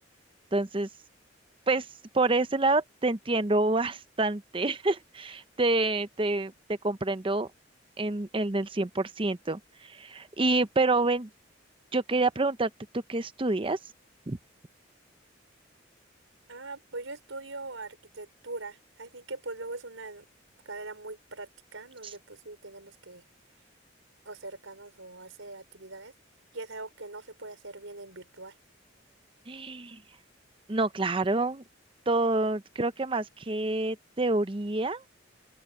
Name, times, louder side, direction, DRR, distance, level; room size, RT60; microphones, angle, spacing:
voice 1, 0.5-0.9 1.7-1.9 2.1-7.5 8.0-11.3 11.9-12.7 13.1-13.8 14.3-14.4 29.5-30.0 30.7-31.6 32.1-35.0, right 2 dB, 25° right, 0.7 m, -27 dB
voice 2, 16.5-20.3 20.6-23.2 24.2-26.1 26.5-28.5, right 2 dB, 90° right, 5.3 m, -42 dB
open air
head